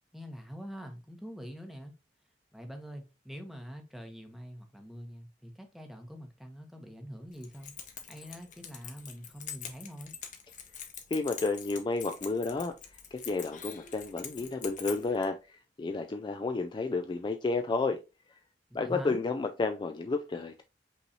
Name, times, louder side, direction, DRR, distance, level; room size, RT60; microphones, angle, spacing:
voice 1, 0.1-1.9 2.5-7.8 8.1-10.1 18.7-19.2, equal, ahead, 0.8 m, -44 dB
Keys jangling, 7.3-15.3, left 8 dB, 45° left, 0.8 m, -45 dB
voice 2, 11.1-12.7 13.1-18.0 18.7-20.6, left 3 dB, 25° left, 0.3 m, -31 dB
5.4 x 3.1 x 2.7 m
head